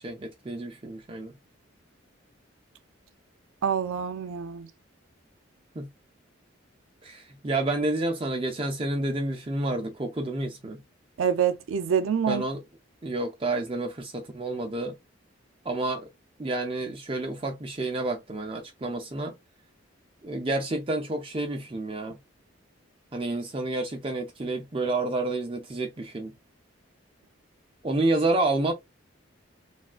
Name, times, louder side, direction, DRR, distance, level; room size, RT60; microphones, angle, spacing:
voice 1, 0.0-1.3 5.8-5.9 7.0-10.8 12.3-12.6 13.0-14.9 15.7-16.1 16.4-19.3 20.2-22.2 23.1-26.3 27.8-28.7, right 2 dB, 25° right, 0.4 m, -29 dB
voice 2, 3.6-4.7 11.2-12.4, right 7 dB, 85° right, 0.4 m, -26 dB
3.4 x 2.3 x 2.3 m
head